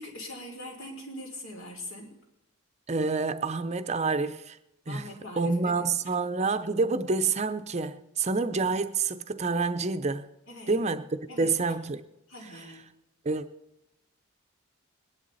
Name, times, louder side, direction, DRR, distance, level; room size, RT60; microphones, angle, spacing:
voice 1, 0.0-2.1 4.9-5.9 10.5-10.8 11.3-11.5 12.3-12.8, left 1 dB, 70° left, 3.6 m, -42 dB
voice 2, 2.9-4.6 4.9-5.0 5.4-10.3 10.7-11.0 11.4-12.0 13.2-13.4, right 4 dB, 30° right, 0.7 m, -28 dB
20.0 x 11.0 x 4.1 m
head